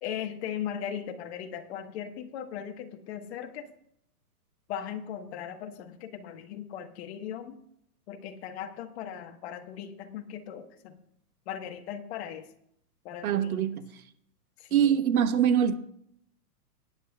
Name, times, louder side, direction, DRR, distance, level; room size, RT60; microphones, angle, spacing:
voice 1, 0.0-3.7 4.7-7.6 8.1-11.0 11.5-12.5 13.0-13.6 14.6-15.0, left 9 dB, 40° left, 1.3 m, -38 dB
voice 2, 13.2-13.9 14.7-15.8, right 9 dB, 65° right, 1.2 m, -24 dB
23.5 x 9.8 x 2.3 m
hypercardioid pair, 140°, 47 cm